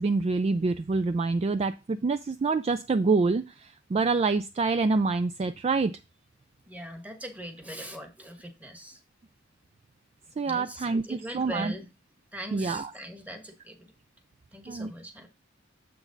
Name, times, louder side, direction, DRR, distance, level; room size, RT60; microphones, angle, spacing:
voice 1, 0.0-6.0 10.4-11.7 12.5-12.9 14.7-14.9, right 3 dB, 30° right, 0.3 m, -26 dB
voice 2, 6.7-9.0 10.4-11.9 12.3-13.9 14.5-15.3, equal, 10° right, 1.3 m, -41 dB
7.2 x 6.0 x 3.9 m
head